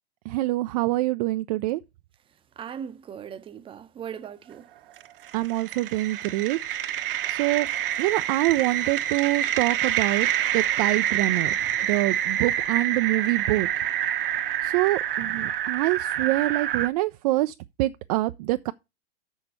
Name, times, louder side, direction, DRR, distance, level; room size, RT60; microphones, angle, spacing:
voice 1, 0.2-1.8 5.3-6.6 7.3-7.7 8.0-10.3 10.5-11.6 11.8-13.7 14.6-18.7, right 18 dB, 40° right, 0.4 m, -25 dB
voice 2, 2.6-4.7, right 8 dB, 15° right, 0.7 m, -38 dB
sound 1, 5.0-16.9, right 11 dB, 65° right, 0.9 m, -27 dB
6.5 x 6.3 x 6.8 m
hypercardioid pair, 110°, 30 cm